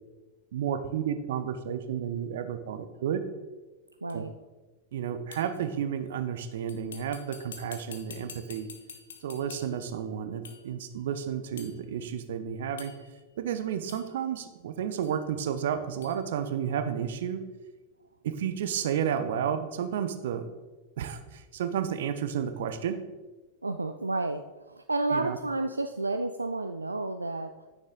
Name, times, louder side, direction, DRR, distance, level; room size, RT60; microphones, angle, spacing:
voice 1, 0.5-3.2 4.1-4.2 4.9-8.7 9.2-12.9 13.4-17.4 18.2-20.4 21.0-23.1 25.1-25.4, right 8 dB, 60° right, 9 dB, 0.7 m, -32 dB
voice 2, 4.0-4.3 23.6-27.7, right 2 dB, 80° right, 7 dB, 0.3 m, -31 dB
sound 1, 4.1-4.2 5.3-5.6 6.7-9.9 10.4-10.7 11.6-11.8 12.8-13.2 13.9-14.1 15.0-15.2 16.0-16.2, left 6 dB, 65° left, 0.9 m, -47 dB
9.6 x 6.6 x 3.7 m, 1.2 s
figure-of-eight pair, 90°, 0 cm